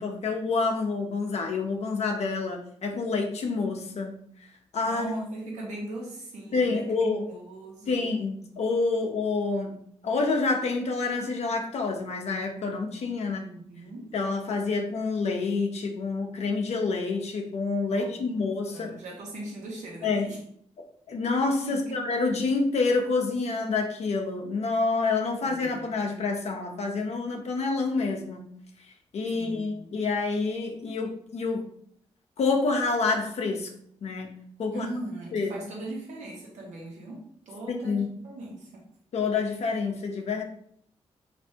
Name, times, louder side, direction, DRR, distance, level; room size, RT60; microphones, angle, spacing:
voice 1, 0.0-4.2 4.7-5.1 6.5-7.2 7.9-13.4 14.1-18.9 20.0-20.3 21.1-28.5 29.1-31.6 32.4-33.7 34.0-34.9 35.3-35.5 37.7-38.1 39.1-40.4, left 4 dB, 65° left, 2 dB, 0.6 m, -28 dB
voice 2, 4.9-8.2 13.2-14.1 17.9-18.4 18.7-20.4 21.7-22.0 25.4-25.9 29.3-29.9 34.7-38.8, right 1 dB, 80° right, -2 dB, 1.0 m, -39 dB
3.2 x 2.6 x 2.7 m, 0.65 s
supercardioid pair, 55°, 12 cm